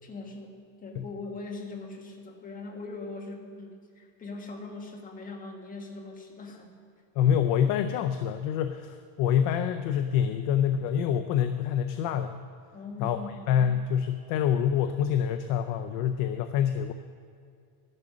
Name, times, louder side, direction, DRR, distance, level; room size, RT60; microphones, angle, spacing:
voice 1, 0.0-6.7 12.7-13.4, left 3 dB, 15° left, 1 dB, 1.5 m, -41 dB
voice 2, 7.2-12.3 13.0-13.2 13.5-16.9, left 9 dB, 40° left, 8 dB, 0.5 m, -26 dB
13.0 x 11.0 x 6.2 m, 2.3 s
cardioid pair, 165°, 50 cm